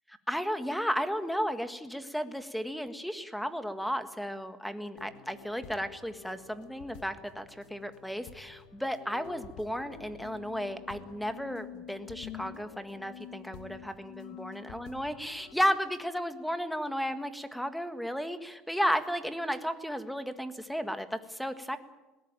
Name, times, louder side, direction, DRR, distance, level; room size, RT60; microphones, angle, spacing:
voice 1, 0.3-21.8, equal, ahead, 10 dB, 1.6 m, -34 dB
sound 1, 5.0-15.5, left 9 dB, 75° left, 2.5 m, -48 dB
21.0 x 18.5 x 9.0 m, 1.1 s
cardioid pair, 130°, 0 cm